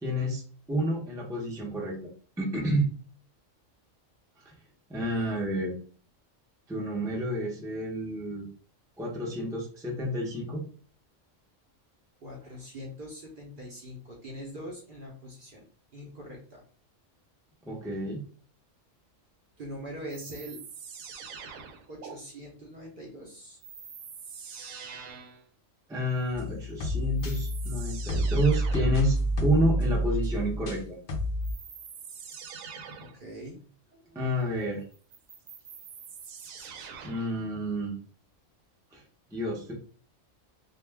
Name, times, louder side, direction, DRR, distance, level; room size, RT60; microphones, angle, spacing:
voice 1, 0.0-0.4 0.7-2.0 2.4-2.9 4.4-4.5 4.9-5.7 6.7-8.5 9.0-10.6 17.6-18.2 25.9-31.0 34.1-34.8 37.0-37.9 38.9-39.0 39.3-39.7, equal, 5° right, -3 dB, 0.5 m, -29 dB
voice 2, 12.2-15.6 15.9-16.6 19.6-20.6 21.9-23.6 33.0-33.6 33.9-34.3, equal, 50° right, -1 dB, 0.7 m, -43 dB
sound 1, 20.1-22.1 23.6-25.4 26.7-26.8 27.2-29.0 31.4-33.2 34.9-37.4, right 6 dB, 85° right, 1.0 m, -44 dB
sound 2, 26.3-30.8 31.1-31.5, right 1 dB, 60° left, 0.5 m, -29 dB
2.4 x 2.2 x 3.3 m, 0.41 s
omnidirectional pair, 1.3 m